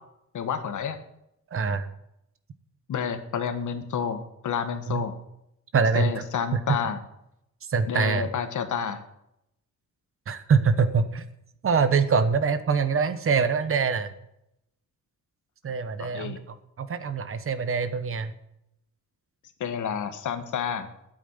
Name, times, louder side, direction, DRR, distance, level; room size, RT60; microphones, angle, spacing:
voice 1, 0.3-1.0 2.9-5.1 5.9-7.0 7.8-9.0 16.0-16.4 19.6-20.9, left 7 dB, 80° left, 8 dB, 1.5 m, -29 dB
voice 2, 1.5-1.9 4.9-5.0 5.7-6.2 6.5-6.6 7.7-8.3 10.3-11.2 11.6-14.1 15.6-18.3, right 5 dB, 45° right, 12 dB, 1.1 m, -24 dB
9.5 x 8.8 x 9.4 m, 0.81 s
wide cardioid pair, 155°, 30 cm